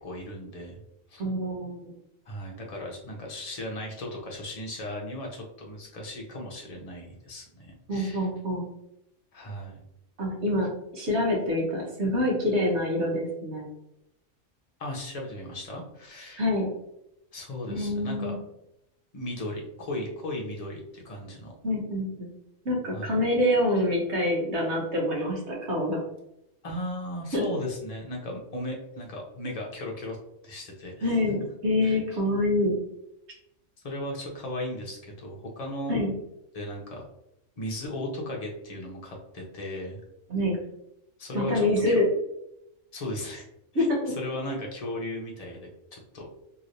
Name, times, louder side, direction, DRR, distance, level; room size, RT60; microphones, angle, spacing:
voice 1, 0.0-0.8 1.1-1.3 2.2-8.3 9.3-9.8 14.8-16.5 17.3-18.4 19.1-21.5 22.9-23.2 26.6-30.2 30.4-31.2 31.8-32.0 33.8-35.9 36.5-37.0 37.6-40.0 41.2-42.0 42.9-43.4 43.7-46.3, left 1 dB, 35° left, -1 dB, 0.6 m, -36 dB
voice 2, 1.2-1.9 7.9-8.6 10.2-10.7 10.9-13.7 16.4-16.7 17.7-18.3 21.6-22.3 22.6-26.0 27.3-27.4 31.0-32.8 35.9-36.1 40.3-40.6 41.3-42.1 43.7-44.0, left 1 dB, 60° right, -3 dB, 1.3 m, -26 dB
3.1 x 2.8 x 2.6 m, 0.83 s
omnidirectional pair, 1.3 m